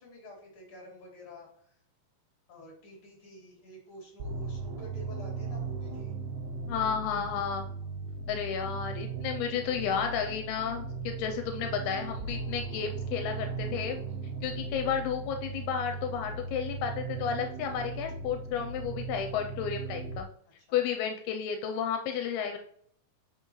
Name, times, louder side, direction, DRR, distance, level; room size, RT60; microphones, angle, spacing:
voice 1, 0.0-1.8 2.5-6.1 20.6-20.8, left 1 dB, 35° left, -2 dB, 3.4 m, -49 dB
sound 1, 4.2-20.2, right 3 dB, 80° right, 2.7 m, -37 dB
voice 2, 6.7-7.7 8.3-14.0 14.4-20.3 20.7-22.6, left 7 dB, 85° left, 5 dB, 2.6 m, -32 dB
8.2 x 6.0 x 3.1 m, 0.63 s
omnidirectional pair, 4.4 m